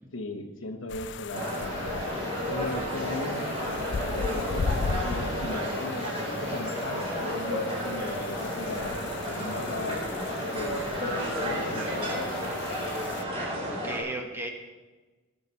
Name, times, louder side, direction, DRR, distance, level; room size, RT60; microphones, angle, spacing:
voice 1, 0.1-1.8 2.5-3.8 4.1-6.1 6.4-9.0 9.2-10.1 10.5-12.6, left 2 dB, 80° left, 6 dB, 1.2 m, -38 dB
sound 1, 0.9-13.2, left 5 dB, 60° left, 0.4 m, -37 dB
sound 2, 1.3-14.0, equal, 30° right, 3.5 m, -32 dB
voice 2, 2.3-2.9 13.7-14.5, right 1 dB, 10° right, 3 dB, 1.2 m, -37 dB
20.0 x 7.0 x 4.2 m, 1.2 s
head